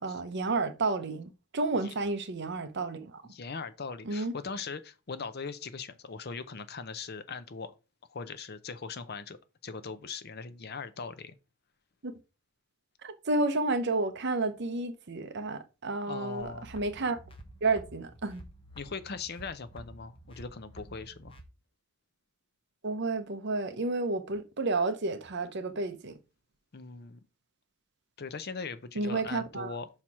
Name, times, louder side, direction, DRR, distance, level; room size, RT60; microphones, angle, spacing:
voice 1, 0.0-3.2 4.0-4.3 12.0-12.1 13.0-17.2 17.6-18.4 22.8-26.2 29.0-29.7, right 3 dB, 50° right, 0.7 m, -31 dB
voice 2, 3.2-7.7 8.1-11.4 16.0-16.7 18.8-21.4 26.7-27.2 28.2-29.9, left 5 dB, 45° left, 0.6 m, -40 dB
sound 1, 16.4-21.4, right 1 dB, 25° left, 1.0 m, -50 dB
5.8 x 4.4 x 4.7 m
head